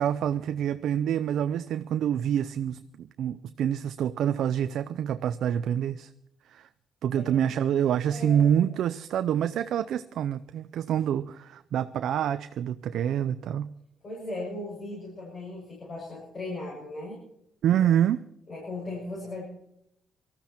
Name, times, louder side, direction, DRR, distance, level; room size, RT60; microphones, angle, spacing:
voice 1, 0.0-6.1 6.5-6.7 7.0-13.7 17.6-18.2, right 9 dB, 75° right, 11 dB, 0.5 m, -27 dB
voice 2, 7.1-7.5 7.8-8.5 14.0-17.2 18.5-19.4, left 2 dB, 40° left, -4 dB, 6.9 m, -37 dB
19.0 x 13.5 x 4.4 m, 0.80 s
cardioid pair, 90°, 0 cm